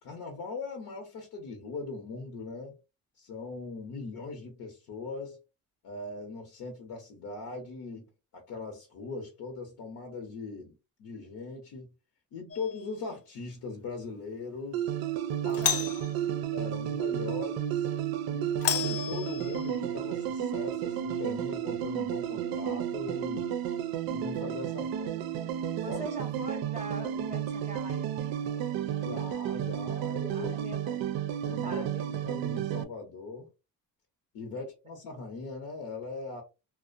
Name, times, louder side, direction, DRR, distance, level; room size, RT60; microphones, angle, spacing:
voice 1, 0.0-2.8 3.2-5.4 5.8-8.1 8.3-10.7 11.0-11.9 12.3-14.8 15.4-15.6 16.5-17.9 18.3-23.5 24.1-25.2 25.9-26.0 28.8-30.7 31.4-31.9 32.2-33.5 34.3-36.4, left 3 dB, 70° left, 0.8 m, -40 dB
Doorbell, 12.5-13.0 15.5-16.1 18.6-19.8, left 8 dB, 45° left, 0.4 m, -32 dB
sound 1, 14.7-32.8, right 10 dB, 80° right, 0.5 m, -32 dB
voice 2, 15.4-16.5 25.8-28.6 30.3-31.0 31.6-32.1 34.5-34.7, right 3 dB, 20° right, 0.5 m, -43 dB
2.5 x 2.1 x 2.5 m
cardioid pair, 135°, 35 cm